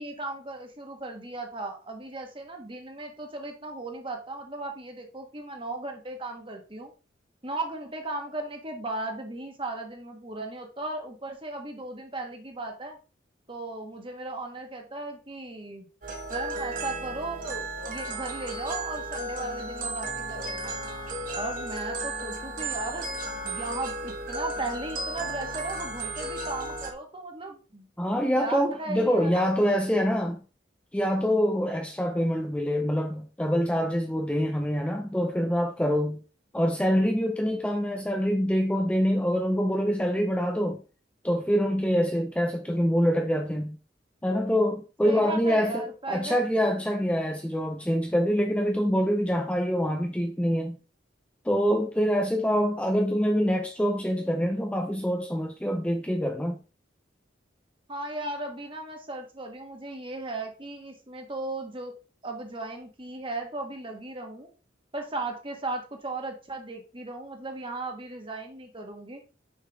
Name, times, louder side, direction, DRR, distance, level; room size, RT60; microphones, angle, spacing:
voice 1, 0.0-6.9 7.4-13.0 13.5-15.9 16.3-20.8 21.4-27.9 28.4-29.5 45.0-46.4 57.9-61.9 62.2-64.5 64.9-69.2, right 2 dB, 30° right, 1.5 m, -36 dB
sound 1, 16.0-26.9, right 2 dB, 45° right, 1.5 m, -34 dB
voice 2, 28.0-30.4 30.9-36.2 36.5-40.8 41.2-43.8 44.2-50.8 51.4-56.6, equal, 5° left, 0.6 m, -25 dB
6.6 x 5.7 x 3.5 m
head